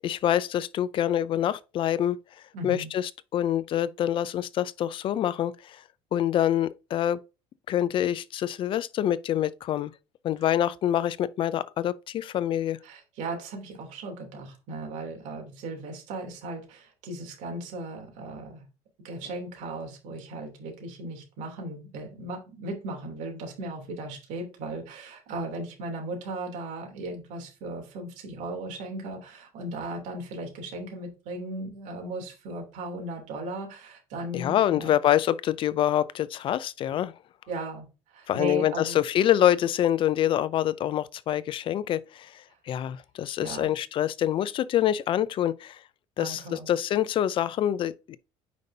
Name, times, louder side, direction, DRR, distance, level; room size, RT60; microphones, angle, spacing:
voice 1, 0.0-2.2 2.6-5.8 6.1-7.2 7.7-9.9 10.2-12.8 34.3-37.1 38.3-45.8 46.2-48.2, left 11 dB, 40° left, 0.4 m, -26 dB
voice 2, 2.5-2.9 12.8-18.6 19.0-34.9 37.5-39.0 43.4-43.7 46.2-46.7, right 2 dB, 70° right, 3.1 m, -37 dB
9.4 x 5.3 x 2.7 m
cardioid pair, 145°, 13 cm